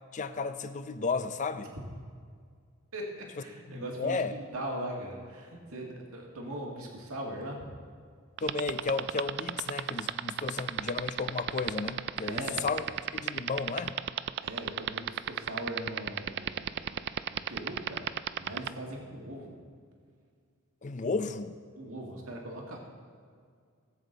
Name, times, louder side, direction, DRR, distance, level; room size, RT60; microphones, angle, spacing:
voice 1, 0.1-1.7 3.7-4.3 8.4-12.8 13.1-14.0 20.8-21.6, left 4 dB, 35° left, 11 dB, 0.5 m, -33 dB
voice 2, 2.9-7.6 12.2-12.9 14.4-18.1 18.4-19.5 21.8-22.8, right 1 dB, 75° right, 0 dB, 2.0 m, -40 dB
sound 1, 8.4-18.7, right 11 dB, 50° right, 0.3 m, -30 dB
18.0 x 8.1 x 4.0 m, 2.1 s
head